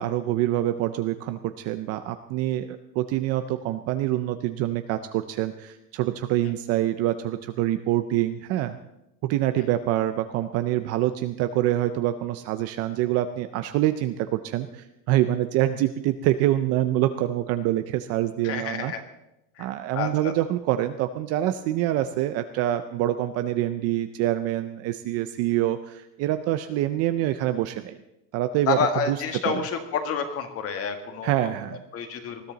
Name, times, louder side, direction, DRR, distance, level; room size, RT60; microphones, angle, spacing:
voice 1, 0.0-8.8 9.2-18.9 19.6-28.0 28.3-28.8 29.1-29.7 31.2-31.8, right 13 dB, 35° right, 10 dB, 0.5 m, -26 dB
voice 2, 18.4-19.0 19.6-19.7 19.9-20.3 28.7-31.5 31.9-32.4, left 6 dB, 30° left, 6 dB, 1.8 m, -29 dB
20.5 x 13.0 x 4.0 m, 0.90 s
supercardioid pair, 155°, 45 cm